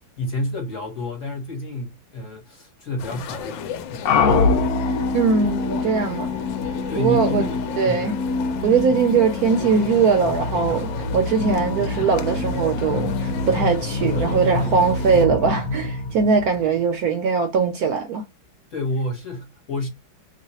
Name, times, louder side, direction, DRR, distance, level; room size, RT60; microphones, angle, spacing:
voice 1, 0.2-4.1 6.9-8.1 10.7-11.0 13.5-13.6 14.6-14.9 18.7-19.9, left 1 dB, 50° left, 1.2 m, -30 dB
sound 1, 3.0-15.3, left 8 dB, 85° left, 1.3 m, -35 dB
sound 2, 4.1-16.9, left 3 dB, 65° left, 1.0 m, -25 dB
voice 2, 5.1-6.3 7.0-7.5 7.8-8.2 8.6-18.2, right 5 dB, 70° right, 0.9 m, -21 dB
3.1 x 2.2 x 4.0 m
omnidirectional pair, 2.0 m